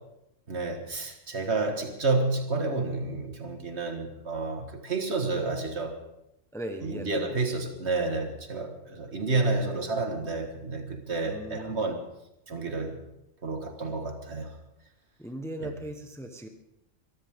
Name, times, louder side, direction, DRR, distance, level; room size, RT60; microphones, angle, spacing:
voice 1, 0.5-6.0 6.8-12.0 12.5-13.0 13.4-14.6 15.6-15.7, right 3 dB, 60° right, 5 dB, 2.0 m, -30 dB
voice 2, 6.5-7.3 11.2-11.9 15.2-16.5, right 1 dB, ahead, 5 dB, 1.2 m, -38 dB
24.0 x 13.5 x 3.7 m, 0.85 s
omnidirectional pair, 1.3 m